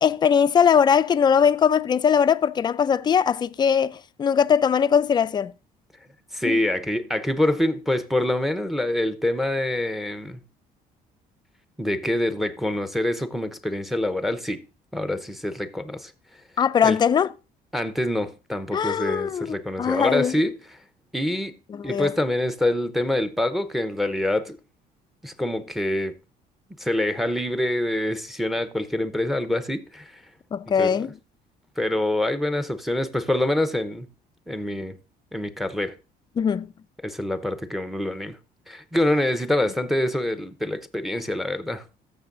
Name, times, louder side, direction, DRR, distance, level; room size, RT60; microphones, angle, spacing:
voice 1, 0.0-5.5 6.4-6.6 16.6-17.3 18.7-19.5 19.8-20.3 21.8-22.1 30.5-31.1 36.4-36.7, left 7 dB, 25° left, 0.4 m, -20 dB
voice 2, 6.3-10.4 11.8-14.6 14.9-16.1 16.8-17.0 17.7-20.6 21.1-21.5 21.8-24.6 25.2-26.1 26.8-30.1 30.8-31.1 31.8-34.1 34.5-34.9 35.3-35.9 37.0-38.4 38.7-41.8, left 1 dB, ahead, 0.7 m, -25 dB
14.5 x 6.8 x 2.6 m
cardioid pair, 110°, 17 cm